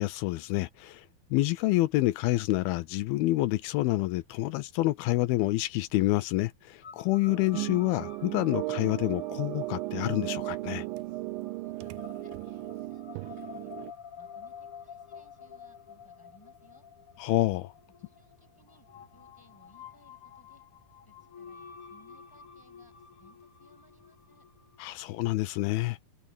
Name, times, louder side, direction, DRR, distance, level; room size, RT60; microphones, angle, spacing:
voice 1, 0.0-10.9 17.2-17.7 24.8-26.0, left 18 dB, 85° left, 2.6 m, -28 dB
sound 1, 6.8-25.0, left 7 dB, 45° left, 2.1 m, -50 dB
sound 2, 7.3-13.9, right 19 dB, 80° right, 2.1 m, -36 dB
voice 2, 11.6-12.3 12.8-13.9 14.2-16.9 18.1-18.9 19.1-20.6 21.1-24.4, equal, 5° left, 7.8 m, -62 dB
omnidirectional pair, 4.3 m